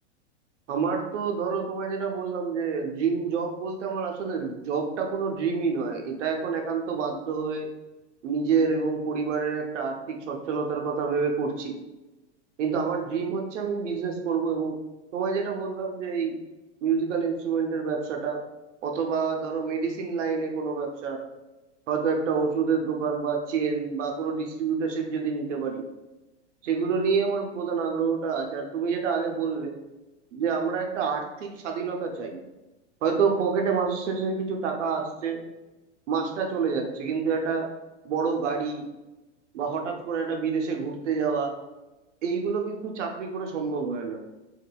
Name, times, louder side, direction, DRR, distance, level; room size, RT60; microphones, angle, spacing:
voice 1, 0.7-7.7 8.2-11.8 12.6-14.8 15.1-16.4 16.8-18.4 18.8-21.2 21.9-25.8 26.6-29.7 30.3-32.4 33.0-35.4 36.1-37.7 38.0-38.8 39.5-41.5 42.2-44.2, right 5 dB, 80° right, 3 dB, 0.7 m, -28 dB
3.7 x 2.2 x 2.3 m, 1.1 s
supercardioid pair, 170°, 36 cm